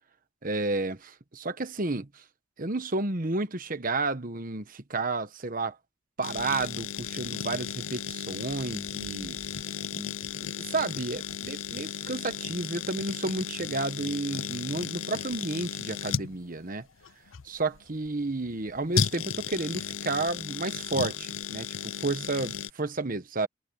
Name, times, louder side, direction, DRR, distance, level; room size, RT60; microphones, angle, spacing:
voice 1, 0.4-2.1 2.6-5.7 6.2-9.4 9.9-16.9 17.4-23.5, right 3 dB, 45° right, 1.2 m, -31 dB
sound 1, 6.2-22.7, left 8 dB, 85° left, 0.7 m, -35 dB
head